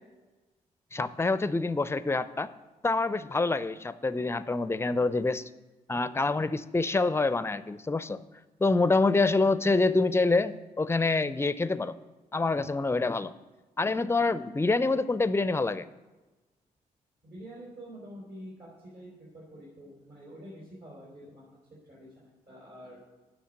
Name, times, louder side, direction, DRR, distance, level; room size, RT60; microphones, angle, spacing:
voice 1, 0.9-2.5 2.8-5.4 5.9-8.2 8.6-12.0 12.3-13.3 13.8-15.9, left 3 dB, 15° left, 16 dB, 0.5 m, -26 dB
voice 2, 9.9-10.3 17.2-21.6 21.9-23.0, equal, 65° right, -6 dB, 4.1 m, -47 dB
9.3 x 6.4 x 6.4 m, 1.2 s
hypercardioid pair, 40°, 18 cm